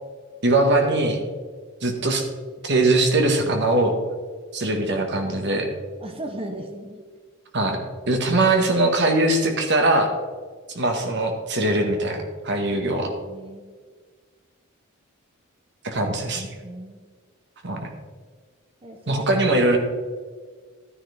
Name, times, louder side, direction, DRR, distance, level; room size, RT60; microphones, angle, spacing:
voice 1, 0.4-1.2 1.8-2.2 2.6-3.9 4.5-5.7 7.5-7.8 8.1-10.1 10.7-13.1 15.8-16.5 17.6-17.9 19.1-19.8, right 2 dB, 55° right, 4 dB, 1.7 m, -21 dB
voice 2, 6.0-7.0 13.3-13.6 16.1-17.0 18.8-19.3, right 1 dB, 25° right, 5 dB, 0.9 m, -37 dB
12.5 x 10.0 x 3.5 m, 1.5 s
head